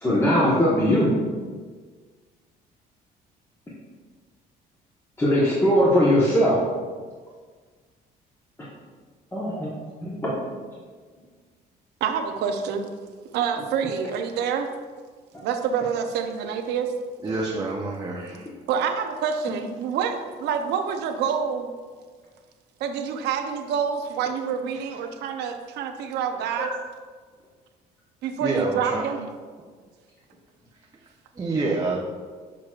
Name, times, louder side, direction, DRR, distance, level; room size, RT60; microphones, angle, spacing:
voice 1, 0.0-1.1 5.2-6.6 9.3-9.7 10.0-10.4 26.6-26.7, equal, 15° left, -7 dB, 1.2 m, -20 dB
voice 2, 12.0-12.9 13.3-14.7 15.4-16.9 18.7-21.7 22.8-26.7 28.2-29.3, right 7 dB, 80° right, 6 dB, 0.6 m, -27 dB
voice 3, 17.2-18.5 28.4-29.0 31.4-32.0, right 3 dB, 20° right, -2 dB, 0.7 m, -27 dB
6.7 x 5.9 x 2.4 m, 1.5 s
cardioid pair, 110°, 17 cm